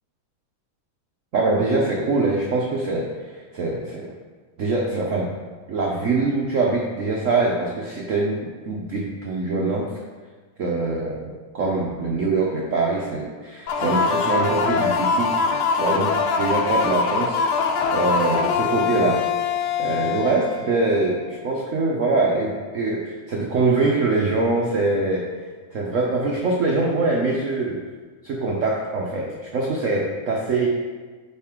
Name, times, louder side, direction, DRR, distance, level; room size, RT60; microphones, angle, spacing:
voice 1, 1.3-4.1 4.6-5.4 5.7-9.9 10.6-15.4 15.7-17.4 17.9-19.2 19.8-25.3 25.7-27.8 28.2-30.7, right 3 dB, 80° right, -2 dB, 0.7 m, -23 dB
sound 1, 13.7-21.2, left 5 dB, 90° left, 1.6 m, -23 dB
8.9 x 4.2 x 3.6 m, 1.4 s
omnidirectional pair, 2.4 m